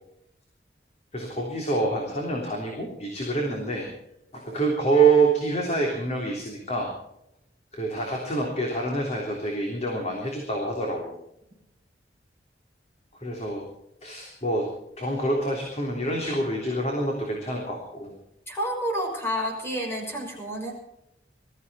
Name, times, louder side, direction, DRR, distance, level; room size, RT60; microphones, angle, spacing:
voice 1, 1.1-3.9 4.3-6.9 7.7-11.2 13.2-13.6 14.0-14.7 15.0-18.1, right 3 dB, 40° left, 0 dB, 3.4 m, -26 dB
voice 2, 18.5-20.7, equal, 15° left, 0 dB, 6.1 m, -29 dB
20.5 x 14.5 x 4.3 m, 0.81 s
head